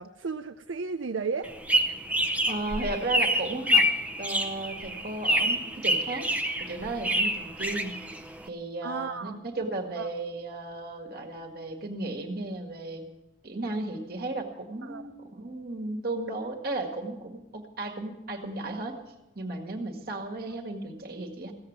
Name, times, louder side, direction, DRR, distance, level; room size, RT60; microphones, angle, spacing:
voice 1, 0.0-1.5 8.8-9.4 10.0-10.1 14.8-15.0, right 5 dB, 85° right, 6 dB, 0.6 m, -34 dB
sound 1, 1.4-8.5, equal, 10° right, 0.7 m, -27 dB
voice 2, 2.5-3.9 4.2-6.3 6.6-8.0 8.5-13.0 13.4-19.0 19.4-21.5, right 2 dB, 50° right, 2 dB, 1.9 m, -35 dB
16.5 x 7.7 x 9.4 m, 0.98 s
head